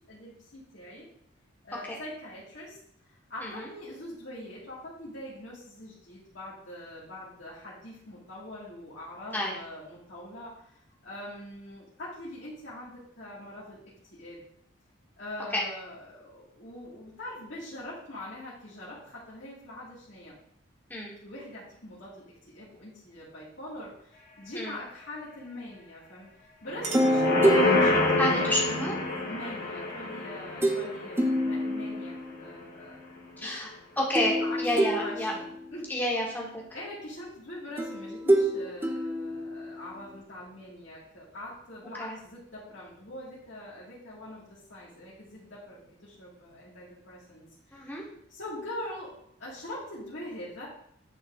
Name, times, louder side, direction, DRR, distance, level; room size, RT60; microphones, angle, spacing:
voice 1, 0.1-1.1 1.6-2.8 3.0-14.4 15.2-20.4 21.2-28.6 29.2-32.1 32.4-33.0 33.4-33.7 34.4-36.1 36.7-48.0 48.3-49.1 49.4-50.7, left 1 dB, 60° left, -9 dB, 1.8 m, -43 dB
Chink clink, 26.3-28.1, right 4 dB, 35° right, 1.0 m, -43 dB
sound 1, 26.7-32.0 32.4-32.5, left 2 dB, 45° left, 1.1 m, -28 dB
sound 2, 26.9-29.2 30.6-30.9 31.2-32.5 34.2-35.9 37.8-40.1, right 1 dB, 10° right, 0.5 m, -27 dB
voice 2, 28.2-29.0 33.4-33.7 34.0-35.3 35.9-36.5 42.0-42.2 47.7-48.0, left 1 dB, 10° left, -3 dB, 1.2 m, -29 dB
9.2 x 3.6 x 3.6 m, 0.71 s
head